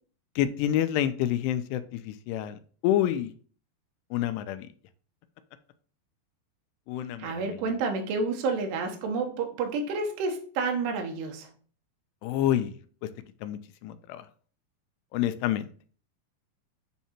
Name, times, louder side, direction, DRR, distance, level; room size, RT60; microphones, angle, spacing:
voice 1, 0.4-3.3 4.1-4.7 6.9-7.5 12.2-12.7 13.4-14.3 15.1-15.7, left 11 dB, 85° left, 11 dB, 2.7 m, -28 dB
voice 2, 7.2-11.5, right 4 dB, 85° right, 4 dB, 3.1 m, -30 dB
8.1 x 2.8 x 4.3 m, 0.44 s
omnidirectional pair, 4.8 m